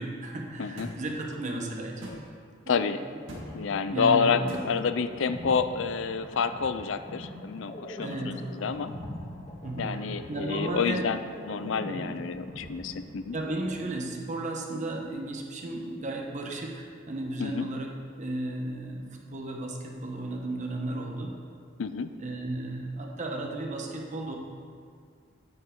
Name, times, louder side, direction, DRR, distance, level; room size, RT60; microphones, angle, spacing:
voice 1, 0.0-2.0 2.6-3.1 3.5-4.7 8.0-8.4 9.6-9.9 10.3-11.1 11.9-12.2 13.3-21.4 22.2-24.4, right 2 dB, 40° right, 0 dB, 1.1 m, -34 dB
voice 2, 0.6-0.9 2.7-3.0 3.5-8.9 9.8-13.4 17.4-17.7 21.8-22.1, left 5 dB, 75° left, 11 dB, 0.5 m, -29 dB
sound 1, 0.8-0.9 2.0-2.2 3.3-3.5 4.5-4.6, equal, 80° right, 2.0 m, -39 dB
sound 2, 3.2-13.7, left 1 dB, 40° left, 1.8 m, -42 dB
9.5 x 9.5 x 3.7 m, 2.1 s
head